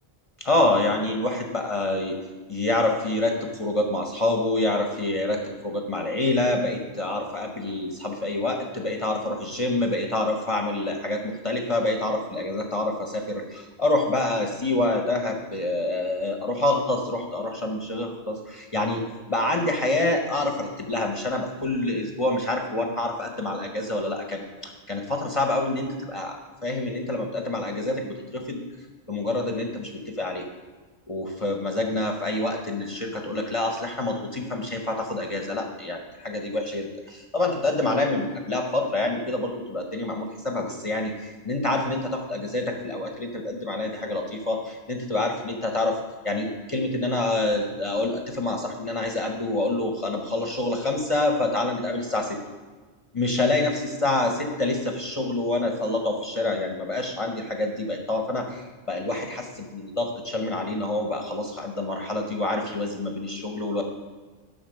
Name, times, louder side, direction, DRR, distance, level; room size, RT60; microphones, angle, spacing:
voice 1, 0.4-2.2 2.5-28.6 29.1-30.4 31.1-46.0 46.2-52.4 53.1-63.8, left 2 dB, 35° left, 3 dB, 0.8 m, -27 dB
11.5 x 4.2 x 6.2 m, 1.4 s
omnidirectional pair, 1.0 m